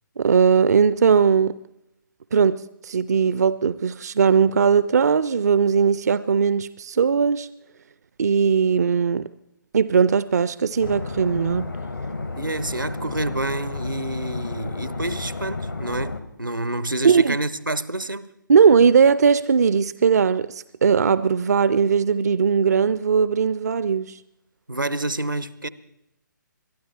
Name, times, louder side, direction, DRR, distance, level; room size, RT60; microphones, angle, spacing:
voice 1, 0.2-1.6 2.3-7.5 8.2-9.3 9.7-11.7 17.0-17.4 18.5-24.2, right 6 dB, 55° right, 0.4 m, -19 dB
sound 1, 10.8-16.2, left 3 dB, 75° left, 1.5 m, -32 dB
voice 2, 12.4-18.3 24.7-25.7, right 2 dB, 85° right, 0.8 m, -28 dB
22.5 x 12.5 x 4.4 m
figure-of-eight pair, 135°, 11 cm